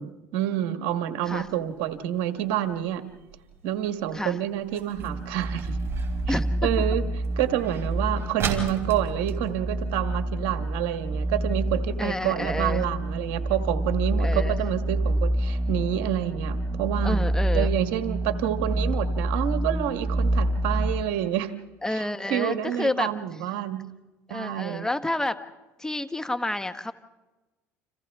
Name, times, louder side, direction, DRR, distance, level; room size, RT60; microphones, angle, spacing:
voice 1, 0.0-3.0 3.6-5.8 6.6-7.0 7.4-17.3 17.5-21.5 21.9-23.9 24.3-24.9, right 11 dB, 75° right, 8 dB, 1.5 m, -28 dB
sound 1, 1.3-10.5 10.8-10.9 11.2-11.6 12.1-12.2 12.7-12.8 13.1-13.2 13.6-13.7, right 6 dB, 40° right, 4.5 m, -37 dB
sound 2, 5.0-21.0, right 1 dB, 25° right, 1.6 m, -28 dB
voice 2, 6.3-6.7 12.0-12.8 14.2-14.6 17.0-17.7 21.8-23.1 24.3-25.4 25.8-26.9, left 1 dB, 10° left, 9 dB, 1.2 m, -29 dB
29.5 x 27.0 x 3.6 m, 1.1 s
supercardioid pair, 85°, 7 cm